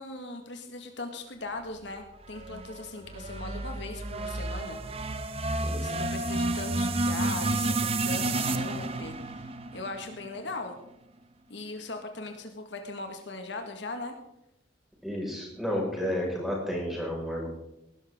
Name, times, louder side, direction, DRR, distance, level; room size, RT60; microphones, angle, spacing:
voice 1, 0.0-4.8 5.8-10.8 11.5-14.1, left 2 dB, 65° left, 4 dB, 1.8 m, -39 dB
sound 1, 2.2-10.6, right 2 dB, 30° right, 0.9 m, -31 dB
voice 2, 15.0-17.5, equal, ahead, -2 dB, 5.5 m, -31 dB
19.0 x 12.5 x 3.8 m, 0.85 s
head